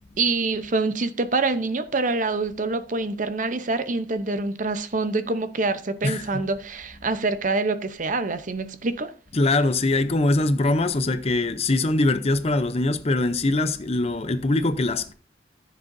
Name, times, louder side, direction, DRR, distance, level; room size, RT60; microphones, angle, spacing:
voice 1, 0.2-9.1, right 3 dB, 45° right, 0.8 m, -26 dB
voice 2, 6.0-6.4 9.3-15.1, left 2 dB, 35° left, 0.6 m, -22 dB
14.5 x 7.6 x 2.7 m
head